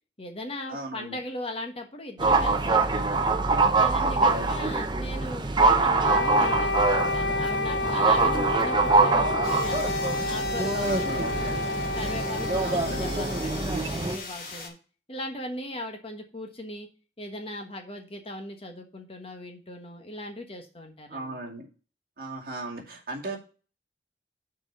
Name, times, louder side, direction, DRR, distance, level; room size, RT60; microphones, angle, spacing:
voice 1, 0.2-3.3 3.7-9.9 10.3-11.6 11.9-14.8 15.1-16.9 17.2-21.4, left 1 dB, 35° left, 4 dB, 1.3 m, -39 dB
voice 2, 0.7-1.2 4.0-4.8 10.8-11.6 12.6-13.1 21.1-21.7 22.2-23.4, right 2 dB, 55° right, -2 dB, 2.2 m, -37 dB
sound 1, 2.2-14.2, right 3 dB, 25° right, 0.6 m, -24 dB
Wind instrument woodwind instrument, 6.0-14.1, left 2 dB, 85° left, 0.5 m, -30 dB
sound 2, 9.4-14.7, left 3 dB, 50° left, 2.4 m, -40 dB
6.3 x 4.7 x 6.7 m, 0.36 s
head